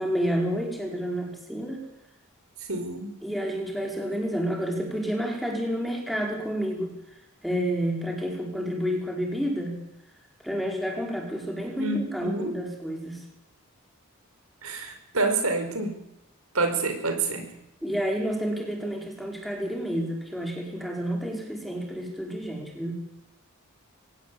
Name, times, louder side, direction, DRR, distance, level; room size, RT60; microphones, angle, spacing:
voice 1, 0.0-1.8 3.2-6.9 7.4-9.8 10.4-13.2 17.8-22.9, equal, ahead, 1 dB, 5.2 m, -30 dB
voice 2, 2.7-3.1 11.8-12.6 14.6-15.9 16.5-17.5, right 3 dB, 85° right, 6 dB, 5.1 m, -27 dB
24.0 x 18.0 x 8.7 m, 0.85 s
head